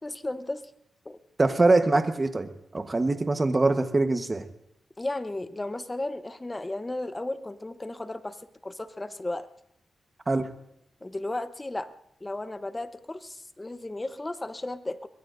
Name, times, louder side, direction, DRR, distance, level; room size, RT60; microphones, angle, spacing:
voice 1, 0.0-0.7 1.0-1.2 5.0-9.5 11.0-11.9 12.2-15.1, left 2 dB, 20° left, 11 dB, 1.0 m, -34 dB
voice 2, 1.4-4.4 10.3-10.5, right 2 dB, 30° right, 8 dB, 1.3 m, -23 dB
23.5 x 21.0 x 2.7 m, 0.78 s
cardioid pair, 75°, 0 cm